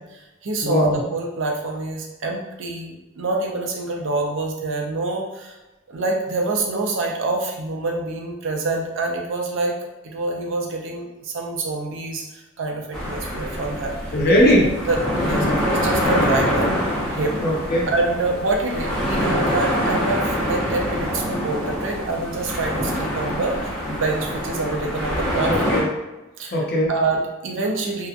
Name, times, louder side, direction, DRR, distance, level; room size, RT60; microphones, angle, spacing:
voice 1, 0.0-5.6 5.9-9.8 10.0-13.9 14.4-14.5 14.9-17.4 17.9-25.8 26.4-26.6 26.9-28.1, right 3 dB, 65° right, 0 dB, 0.5 m, -26 dB
voice 2, 0.6-1.0 14.1-14.7 15.4-15.7 17.4-17.9 25.5-25.9 26.5-26.9, equal, 50° left, -2 dB, 0.6 m, -19 dB
sound 1, 12.9-25.8, equal, 5° left, 0.6 m, -25 dB
2.8 x 2.1 x 2.4 m, 1.1 s
head